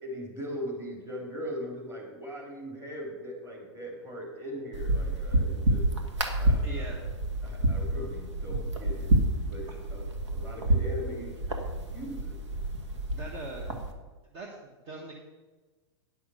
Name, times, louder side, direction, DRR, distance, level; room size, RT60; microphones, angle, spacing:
voice 1, 0.0-5.9 6.3-6.9 7.4-9.1 9.5-10.1 10.3-12.4, equal, 20° right, -1 dB, 3.2 m, -40 dB
sound 1, 4.7-13.9, right 1 dB, 90° right, 1.7 m, -29 dB
voice 2, 6.6-7.0 13.1-13.7 14.3-15.1, right 3 dB, 40° right, 1 dB, 1.4 m, -41 dB
10.0 x 6.2 x 6.4 m, 1.3 s
hypercardioid pair, 130°, 15 cm